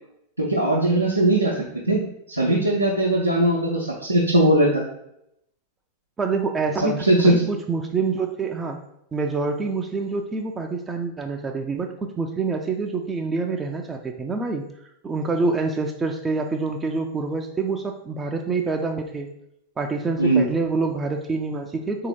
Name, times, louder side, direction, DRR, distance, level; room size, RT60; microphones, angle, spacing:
voice 1, 0.4-1.6 1.9-2.0 2.3-4.8 6.8-7.4 20.2-20.5, right 1 dB, 80° right, -5 dB, 0.7 m, -19 dB
voice 2, 6.2-7.1 7.5-8.8 9.1-19.3 19.8-22.1, right 4 dB, 15° right, 4 dB, 0.4 m, -26 dB
4.0 x 2.8 x 4.4 m, 0.79 s
figure-of-eight pair, 90°, 0 cm